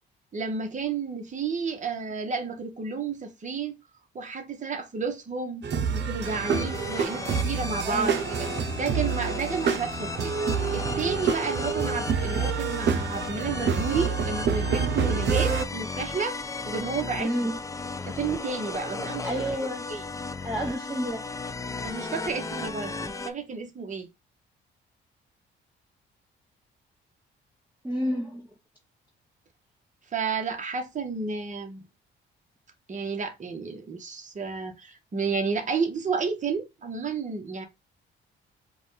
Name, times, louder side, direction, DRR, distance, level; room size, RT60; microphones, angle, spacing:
voice 1, 0.3-3.7 4.1-8.1 8.4-8.5 8.8-10.3 10.7-17.3 18.1-19.3 19.9-20.0 21.8-24.1 30.1-31.8 32.9-37.7, right 5 dB, 40° right, 1.3 m, -31 dB
sound 1, 5.6-15.6, right 6 dB, 65° right, 0.8 m, -28 dB
sound 2, 6.2-23.3, left 3 dB, 15° left, 0.5 m, -35 dB
voice 2, 7.8-8.2 17.2-17.6 19.2-19.8 20.4-21.2 27.8-28.5, equal, 10° right, 1.0 m, -29 dB
4.8 x 2.5 x 3.9 m
cardioid pair, 90°, 20 cm